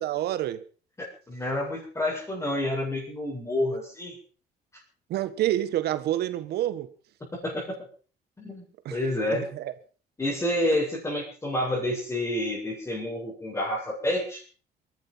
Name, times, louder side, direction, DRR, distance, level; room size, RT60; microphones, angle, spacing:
voice 1, 0.0-0.6 5.1-6.9 8.8-9.0 9.3-9.7, right 13 dB, 70° right, 1.5 m, -28 dB
voice 2, 1.3-4.2 7.3-7.8 8.4-8.6 8.9-9.5 10.2-14.4, left 1 dB, 15° left, 7.9 m, -29 dB
22.0 x 11.5 x 5.8 m
cardioid pair, 110°, 17 cm